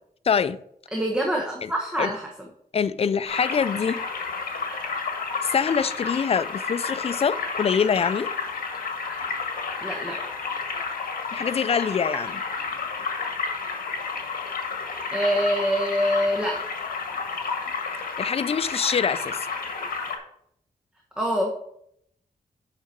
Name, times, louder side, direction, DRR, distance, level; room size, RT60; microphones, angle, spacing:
voice 1, 0.2-0.6 1.6-1.7 2.0-2.1 2.7-4.0 5.4-8.3 11.3-12.4 18.2-19.5, left 6 dB, 40° left, 0.4 m, -24 dB
voice 2, 0.9-2.3 9.1-9.2 9.8-10.2 15.1-16.6 21.2-21.5, equal, 5° right, 1.2 m, -25 dB
sound 1, 3.2-20.2, left 5 dB, 75° left, 1.5 m, -31 dB
8.7 x 5.8 x 4.5 m
wide cardioid pair, 140°, 15 cm